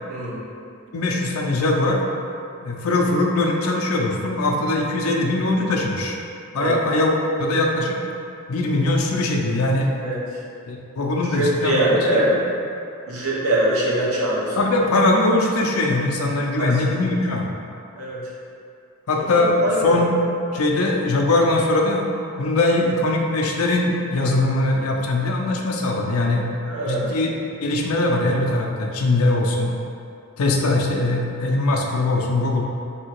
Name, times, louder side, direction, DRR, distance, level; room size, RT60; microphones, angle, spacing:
voice 1, 0.1-0.4 6.5-6.8 10.0-10.2 11.2-12.4 13.1-14.6 16.6-16.8 18.0-18.2 19.2-19.9 26.6-27.2, right 1 dB, 85° right, -6 dB, 1.0 m, -23 dB
voice 2, 0.9-2.0 2.6-6.2 6.5-7.1 7.4-8.0 8.5-9.9 10.7-12.4 14.6-17.5 19.1-20.2 20.5-22.1 22.4-26.4 26.9-27.3 27.6-29.7 30.4-32.6, left 2 dB, 85° left, 1 dB, 0.5 m, -21 dB
3.4 x 2.8 x 4.5 m, 2.5 s
head